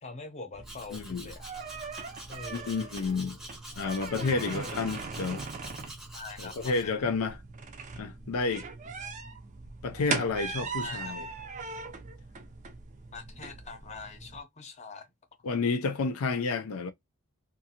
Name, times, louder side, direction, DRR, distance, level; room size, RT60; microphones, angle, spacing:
voice 1, 0.0-1.4 2.3-2.8 4.4-4.7 6.1-7.0 10.8-11.2 13.1-15.1, left 4 dB, 30° left, 0.8 m, -44 dB
sound 1, 0.5-14.4, right 4 dB, 35° right, 0.4 m, -40 dB
Domestic sounds home sounds, 0.6-6.8, right 1 dB, ahead, 0.7 m, -47 dB
voice 2, 0.9-1.3 2.5-3.4 3.8-5.4 6.4-7.4 8.0-8.7 9.8-11.3 15.4-16.9, left 4 dB, 80° left, 0.4 m, -30 dB
2.6 x 2.5 x 2.7 m
head